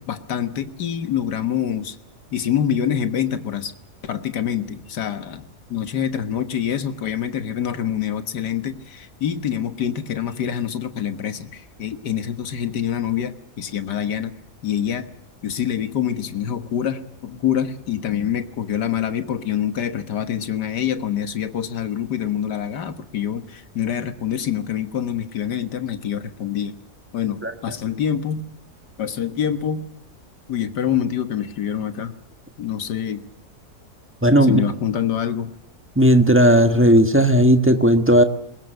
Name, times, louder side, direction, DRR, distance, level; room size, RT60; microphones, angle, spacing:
voice 1, 0.0-2.0 2.3-3.7 4.0-5.4 5.7-14.3 14.6-15.1 15.4-26.8 27.1-28.5 29.0-29.9 30.5-32.1 32.6-33.3 34.4-35.5, left 9 dB, 90° left, 10 dB, 2.0 m, -26 dB
voice 2, 34.2-34.6 36.0-38.2, equal, 10° right, 7 dB, 1.3 m, -15 dB
22.5 x 20.5 x 7.8 m, 0.81 s
omnidirectional pair, 1.7 m